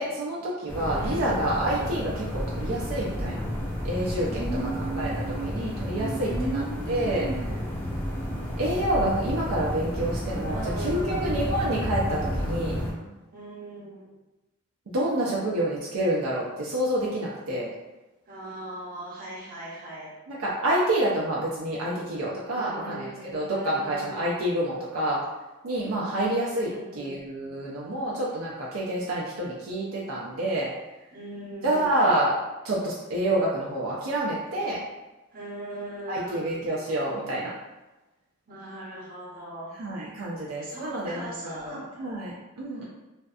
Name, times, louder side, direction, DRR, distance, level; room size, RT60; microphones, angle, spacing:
voice 1, 0.0-3.4 3.8-4.4 5.0-5.1 5.5-6.6 6.9-7.2 8.6-12.8 14.9-17.7 20.3-23.1 23.3-25.2 25.6-30.7 31.6-32.3 32.6-34.8 36.1-37.5 39.8-42.8, right 1 dB, 70° right, -5 dB, 0.4 m, -28 dB
sound 1, 0.7-12.9, equal, 10° left, 0.5 m, -31 dB
voice 2, 0.9-1.5 4.3-7.6 10.5-11.4 13.3-14.1 18.3-20.2 22.5-24.4 26.7-27.2 31.1-32.1 35.3-36.6 38.5-39.7 40.6-42.1, right 2 dB, 45° right, -5 dB, 0.7 m, -38 dB
2.5 x 2.3 x 2.3 m, 1.1 s
head